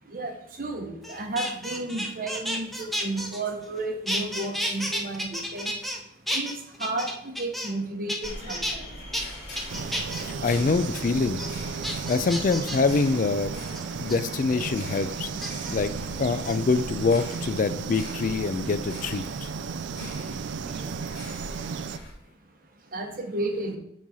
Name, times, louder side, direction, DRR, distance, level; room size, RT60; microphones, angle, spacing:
voice 1, 0.0-9.8 22.2-23.8, right 2 dB, 45° right, 4 dB, 0.8 m, -33 dB
sound 1, 1.0-3.8 4.1-6.0 6.3-7.8 8.1-8.7 9.1-9.2 9.6-10.2 10.7-11.0 11.4-11.5 11.8-12.9 13.7-14.2 15.4-15.7 16.3-16.5 17.1-17.7 19.1-20.3 20.6-21.0, equal, ahead, 0.6 m, -32 dB
sound 2, 8.2-22.1, equal, 60° left, 2.4 m, -42 dB
sound 3, 9.7-22.0, right 6 dB, 75° right, 0.4 m, -34 dB
voice 2, 10.1-11.4 12.1-13.5 14.0-19.5 20.0-20.1, left 4 dB, 45° left, 12 dB, 0.3 m, -25 dB
7.4 x 3.9 x 4.2 m, 0.76 s
head